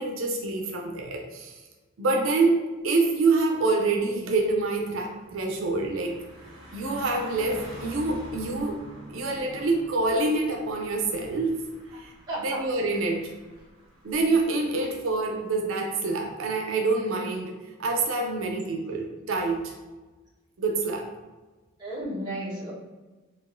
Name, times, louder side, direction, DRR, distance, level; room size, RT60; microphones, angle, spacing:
voice 1, 0.0-1.6 2.0-6.1 6.7-8.8 9.1-11.7 11.9-12.1 12.4-13.3 14.0-19.7 20.6-21.1, right 3 dB, 80° right, 1 dB, 0.5 m, -26 dB
Car passing by, 2.8-3.1 3.5-14.4, right 1 dB, 50° right, 1.2 m, -47 dB
voice 2, 12.3-12.6 21.8-22.7, right 1 dB, 20° right, -8 dB, 1.0 m, -33 dB
4.9 x 2.4 x 2.5 m, 1.2 s
head